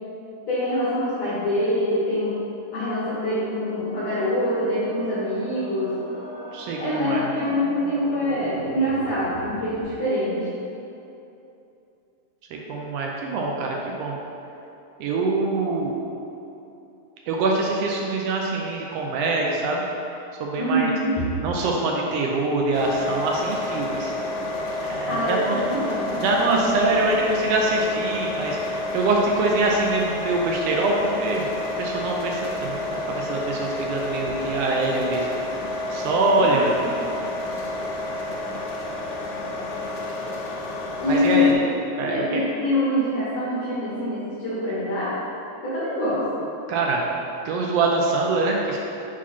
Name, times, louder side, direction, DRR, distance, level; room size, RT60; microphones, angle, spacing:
voice 1, 0.5-2.4 2.7-6.0 6.8-10.5 20.6-21.2 25.1-26.6 36.5-36.6 41.0-41.5 42.0-45.2 45.6-46.3, left 1 dB, 65° left, -10 dB, 2.3 m, -25 dB
sound 1, 3.3-9.8, right 1 dB, 65° right, 2.4 m, -38 dB
voice 2, 6.5-7.3 12.5-14.2 15.0-16.0 17.3-19.8 20.4-20.9 21.4-24.1 24.8-25.8 26.2-31.5 31.8-35.3 35.9-36.8 41.1-41.6 42.0-42.2 46.7-47.0 47.4-48.8, right 2 dB, 85° right, -1 dB, 1.4 m, -24 dB
sound 2, 22.7-41.5, left 2 dB, 85° left, 1.2 m, -30 dB
5.6 x 4.9 x 4.2 m, 2.8 s
omnidirectional pair, 3.4 m